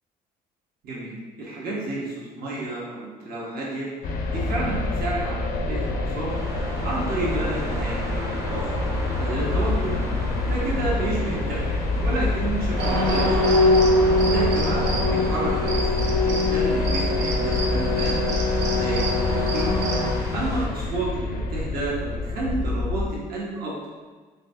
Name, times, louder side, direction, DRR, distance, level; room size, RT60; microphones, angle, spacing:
voice 1, 0.8-3.9 4.3-6.3 6.8-8.7 9.1-9.9 10.5-11.7 12.0-13.5 14.2-15.9 16.2-18.1 18.7-19.8 20.3-23.7, right 2 dB, 60° right, -5 dB, 1.1 m, -31 dB
sound 1, 4.0-23.0, left 3 dB, 60° left, 0.5 m, -27 dB
sound 2, 6.3-20.7, left 1 dB, 15° right, 0.6 m, -33 dB
sound 3, 12.8-20.1, left 1 dB, 90° right, 0.8 m, -23 dB
4.0 x 3.3 x 2.7 m, 1.4 s
cardioid pair, 110°, 17 cm